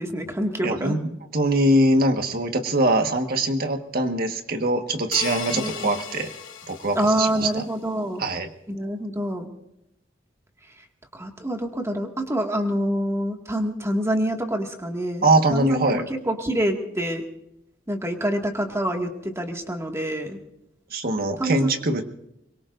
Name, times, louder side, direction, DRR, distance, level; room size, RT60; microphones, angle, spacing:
voice 1, 0.0-1.0 5.5-6.0 7.0-8.2 8.7-9.5 11.1-17.2 17.9-20.4 21.4-21.7, right 1 dB, 15° right, 3 dB, 2.0 m, -26 dB
voice 2, 0.6-6.3 6.7-7.3 7.5-7.6 8.2-8.5 15.2-16.0 20.9-22.0, right 1 dB, 50° right, 5 dB, 1.5 m, -22 dB
sound 1, 5.1-7.6, left 7 dB, 90° left, 2.5 m, -36 dB
24.5 x 22.5 x 2.6 m, 0.84 s
head